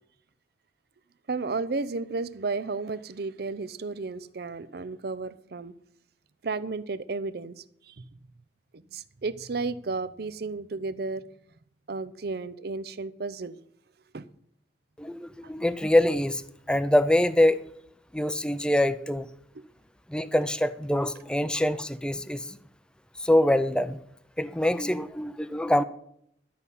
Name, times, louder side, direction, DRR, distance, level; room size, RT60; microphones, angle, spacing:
voice 1, 1.3-5.7 6.4-8.0 8.7-11.2 11.9-13.6 14.1-14.2 19.5-19.6, right 3 dB, 60° right, 0.6 m, -33 dB
voice 2, 15.0-16.4 16.7-17.6 18.1-19.3 20.1-22.6 23.2-24.0 24.4-25.8, left 1 dB, 5° left, 0.5 m, -24 dB
12.0 x 5.5 x 8.2 m
head